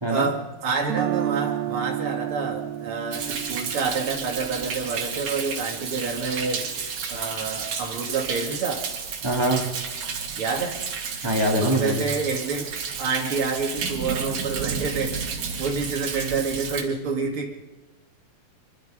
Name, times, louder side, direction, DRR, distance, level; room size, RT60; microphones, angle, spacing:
voice 1, 0.1-6.7 7.1-8.9 10.4-10.8 11.6-17.7, right 4 dB, 40° right, 1 dB, 2.9 m, -28 dB
Guitar, 0.8-6.8, right 12 dB, 85° right, 3.0 m, -32 dB
Thunder, 3.1-16.8, right 6 dB, 55° right, 3.4 m, -32 dB
voice 2, 9.2-9.7 11.2-12.0, right 1 dB, 10° right, -1 dB, 2.2 m, -23 dB
24.5 x 23.5 x 5.1 m, 1.1 s
omnidirectional pair, 4.2 m